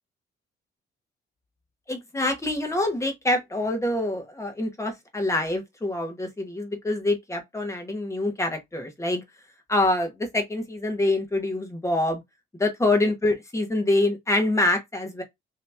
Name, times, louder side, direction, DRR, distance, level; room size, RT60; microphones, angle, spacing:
voice 1, 1.9-9.2 9.7-12.2 12.6-15.2, left 2 dB, 15° left, 1.2 m, -25 dB
2.9 x 2.8 x 3.4 m
cardioid pair, 90°, 20 cm